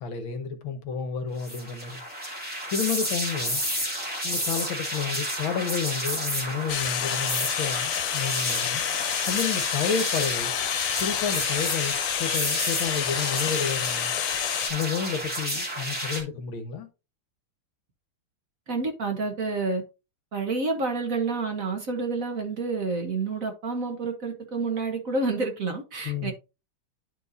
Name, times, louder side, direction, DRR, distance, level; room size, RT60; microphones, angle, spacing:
voice 1, 0.0-2.0 2.7-3.6 4.2-8.8 9.1-10.5 11.0-14.1 14.7-16.9 26.1-26.3, left 6 dB, 70° left, 1.7 m, -31 dB
sound 1, 1.4-16.2, equal, 5° right, 2.3 m, -31 dB
sound 2, 6.7-14.7, left 12 dB, 90° left, 1.5 m, -29 dB
voice 2, 18.7-19.8 20.3-26.3, right 3 dB, 50° right, 1.2 m, -29 dB
10.5 x 4.6 x 2.6 m
omnidirectional pair, 2.3 m